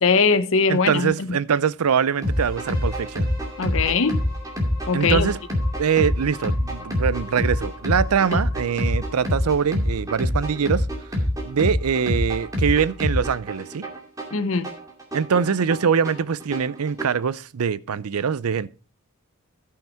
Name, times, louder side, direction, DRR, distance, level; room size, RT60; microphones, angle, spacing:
voice 1, 0.0-1.3 3.6-4.2 4.9-5.3 14.3-14.7, left 4 dB, 65° left, 0.8 m, -21 dB
voice 2, 0.7-3.3 4.9-5.4 5.8-10.9 11.5-13.9 15.1-18.7, right 6 dB, 85° right, 0.5 m, -23 dB
sound 1, 2.2-17.2, left 1 dB, 15° right, 2.3 m, -26 dB
sound 2, 2.2-10.0, left 3 dB, 45° right, 6.9 m, -44 dB
13.0 x 5.8 x 4.4 m
head